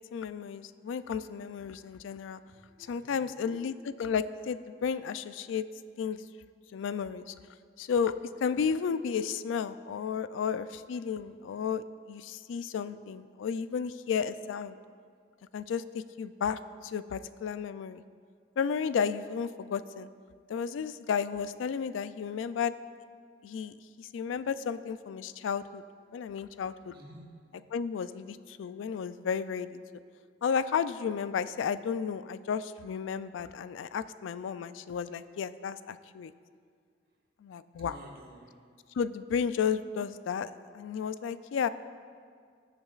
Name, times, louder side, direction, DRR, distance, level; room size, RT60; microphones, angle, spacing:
voice 1, 0.0-2.4 2.9-3.7 4.0-5.6 6.0-6.3 6.7-7.3 7.8-8.1 8.4-14.8 15.5-18.0 18.6-20.1 20.5-22.7 23.4-25.8 26.1-26.9 27.7-29.8 30.4-36.3 37.4-37.9 39.0-41.7, left 6 dB, 80° left, 14 dB, 0.3 m, -33 dB
voice 2, 2.5-4.0 11.2-11.4 12.8-13.0 26.9-27.3 37.1-37.2 37.8-38.6, right 1 dB, 55° right, -2 dB, 1.4 m, -53 dB
16.0 x 6.9 x 2.4 m, 2.1 s
head